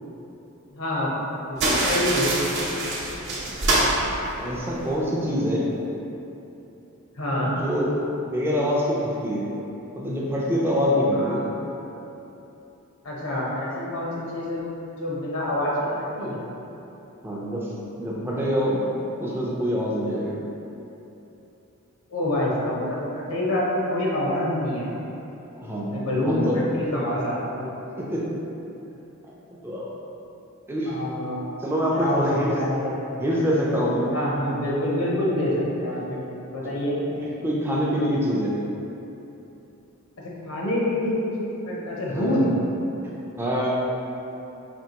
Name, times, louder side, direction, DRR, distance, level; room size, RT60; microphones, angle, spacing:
voice 1, 0.7-1.1 1.5-2.8 7.2-7.5 11.2-11.4 13.0-14.6 15.0-16.4 22.1-24.9 25.9-27.7 30.9-31.5 31.9-32.2 32.5-32.9 34.1-37.0 40.2-42.5, left 1 dB, 80° left, -5 dB, 0.8 m, -26 dB
sound 1, 1.6-4.9, right 1 dB, 55° right, 0.7 m, -25 dB
voice 2, 4.4-5.8 7.6-9.5 10.0-11.5 17.2-17.7 18.0-18.9 19.2-20.4 25.5-26.6 28.0-28.4 29.6-29.9 30.7-31.0 31.6-32.6 33.2-34.1 36.6-36.8 37.1-37.2 37.4-38.6 42.1-42.4 43.4-43.7, equal, 10° right, -5 dB, 0.4 m, -25 dB
4.4 x 2.8 x 2.9 m, 3.0 s
head